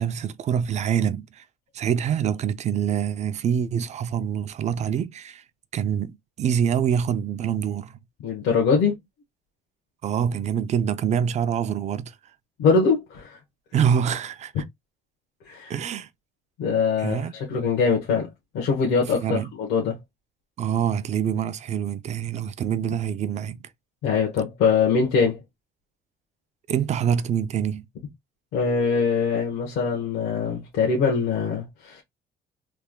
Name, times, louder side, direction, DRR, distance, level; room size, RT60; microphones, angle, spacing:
voice 1, 0.0-1.4 1.7-5.4 5.7-8.0 10.0-12.1 13.7-14.5 15.7-16.1 17.0-17.3 19.1-19.5 20.6-23.6 26.7-27.9, right 8 dB, 45° right, 0.5 m, -25 dB
voice 2, 8.2-8.9 12.6-13.4 15.5-15.7 16.6-18.3 18.5-20.0 24.0-25.4 28.5-32.0, left 5 dB, 85° left, 1.2 m, -23 dB
3.4 x 2.2 x 3.6 m
cardioid pair, 110°, 17 cm